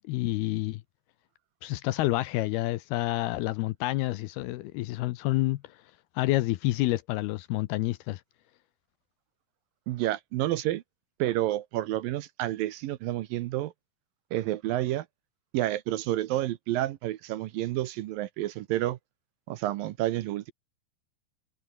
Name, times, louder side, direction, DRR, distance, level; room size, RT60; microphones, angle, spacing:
voice 1, 0.1-0.8 1.6-5.6 6.2-8.2, left 17 dB, 75° left, 2.5 m, -28 dB
voice 2, 9.9-10.8 11.2-13.7 14.3-15.1 15.5-19.0 19.5-20.5, right 14 dB, 75° right, 2.3 m, -29 dB
omnidirectional pair, 4.9 m